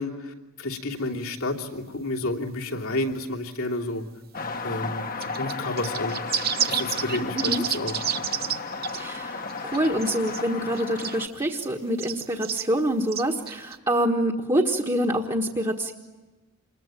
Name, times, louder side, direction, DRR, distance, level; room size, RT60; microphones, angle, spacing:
voice 1, 0.0-4.0 4.6-5.0 5.4-6.1 6.6-7.9, left 2 dB, 80° left, -1 dB, 3.0 m, -30 dB
sound 1, 4.3-11.3, left 4 dB, 40° left, 1.3 m, -34 dB
sound 2, 5.2-8.6 8.8-9.0 9.5-10.4 10.7-11.2 12.0-12.6 13.1-13.8, right 9 dB, 45° right, 1.0 m, -29 dB
voice 2, 8.9-15.9, right 1 dB, 20° right, -1 dB, 1.5 m, -26 dB
28.0 x 21.5 x 9.2 m, 1.2 s
head